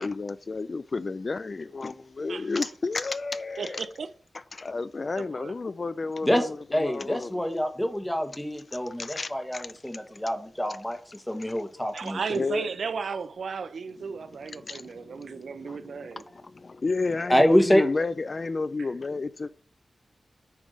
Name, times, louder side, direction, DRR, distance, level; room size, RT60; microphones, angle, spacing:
voice 1, 0.0-3.9 4.5-7.4 9.0-9.7 12.3-12.7 14.5-16.1 16.6-19.5, left 3 dB, 40° left, 0.4 m, -31 dB
voice 2, 2.3-2.8 3.5-4.1 5.1-5.6 11.9-16.3 18.8-19.0, right 5 dB, 90° right, 0.6 m, -35 dB
voice 3, 6.2-12.5 17.3-17.8, equal, 10° left, 1.3 m, -26 dB
8.9 x 3.6 x 6.3 m
wide cardioid pair, 150°, 0 cm